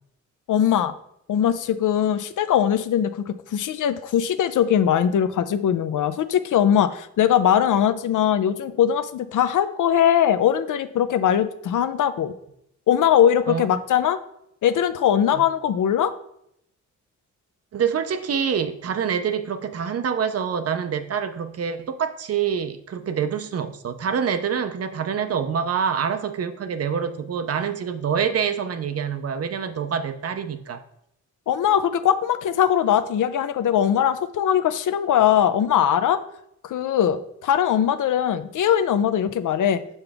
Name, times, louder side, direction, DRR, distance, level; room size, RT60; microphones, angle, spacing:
voice 1, 0.5-0.9 1.3-12.3 12.9-14.2 14.6-16.1 31.5-36.2 36.6-39.8, left 9 dB, 75° left, 0.5 m, -21 dB
voice 2, 17.7-30.8, right 7 dB, 50° right, 0.5 m, -26 dB
7.0 x 5.5 x 3.4 m
wide cardioid pair, 150°, 31 cm